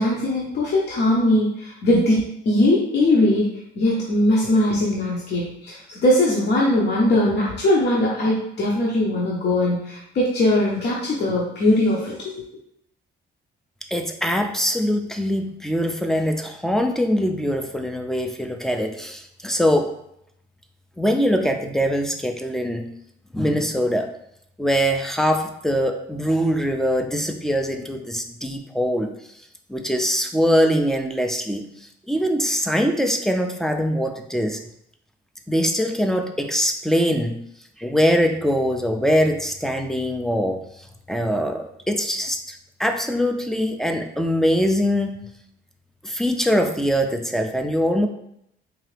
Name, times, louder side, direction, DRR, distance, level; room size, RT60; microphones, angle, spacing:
voice 1, 0.0-3.5 3.8-12.3, left 1 dB, 60° left, -5 dB, 0.9 m, -20 dB
voice 2, 13.9-19.9 21.0-22.9 23.3-24.1 24.6-29.1 29.7-31.7 32.1-34.6 35.5-37.4 37.8-40.6 41.1-45.2 46.0-48.1, equal, ahead, 5 dB, 0.4 m, -22 dB
3.9 x 2.8 x 3.2 m, 0.75 s
cardioid pair, 90°, 20 cm